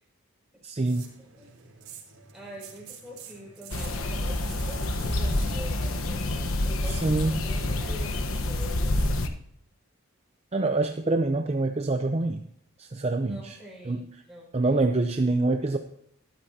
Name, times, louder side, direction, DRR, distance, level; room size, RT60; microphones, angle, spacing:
voice 1, 0.6-1.1 6.9-7.4 10.5-12.4 12.8-13.6 13.8-14.0 14.5-15.8, right 2 dB, 30° right, 6 dB, 0.5 m, -26 dB
sound 1, 0.8-6.3, right 7 dB, 80° right, 3.6 m, -48 dB
voice 2, 2.3-9.0 13.2-14.8, equal, ahead, -6 dB, 5.0 m, -45 dB
sound 2, 3.7-9.3, left 1 dB, 70° left, 1.1 m, -28 dB
13.0 x 12.0 x 2.8 m, 0.72 s
head